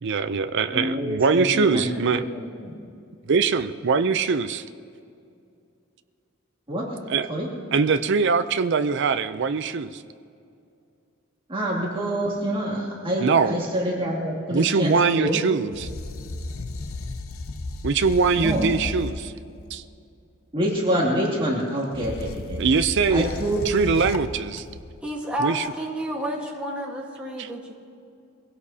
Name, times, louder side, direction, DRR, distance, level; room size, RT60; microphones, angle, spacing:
voice 1, 0.0-2.2 3.3-4.6 7.1-7.3 7.7-10.0 13.2-13.6 14.5-15.9 17.8-19.3 19.7-19.8 22.6-23.3 23.7-24.6 25.4-25.6 27.4-27.5, right 5 dB, 55° right, 10 dB, 0.5 m, -22 dB
voice 2, 0.7-2.7 6.7-6.8 7.3-7.5 11.5-15.4 18.4-18.6 20.5-22.6 23.1-23.6, equal, 25° right, -4 dB, 2.5 m, -26 dB
sound 1, 15.7-19.9 21.9-25.0, left 2 dB, 75° left, 0.8 m, -34 dB
voice 3, 25.0-27.7, right 1 dB, 5° right, -3 dB, 1.4 m, -30 dB
23.0 x 16.5 x 2.8 m, 2.4 s
head